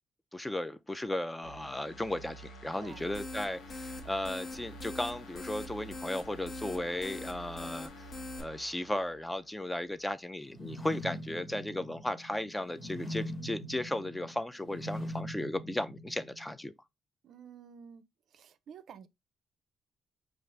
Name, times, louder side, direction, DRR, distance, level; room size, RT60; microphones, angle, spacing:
voice 1, 0.3-7.9 8.4-16.7, left 1 dB, 10° left, 0.4 m, -35 dB
sound 1, 1.4-10.1 10.5-10.6, right 2 dB, 75° left, 0.9 m, -50 dB
voice 2, 2.7-3.1 17.2-18.0 18.3-19.1, right 7 dB, 65° right, 0.5 m, -50 dB
sound 2, 2.9-8.4, left 3 dB, 55° left, 1.2 m, -44 dB
sound 3, 10.5-16.5, equal, 30° left, 1.2 m, -42 dB
5.1 x 2.4 x 3.2 m
cardioid pair, 90°, 0 cm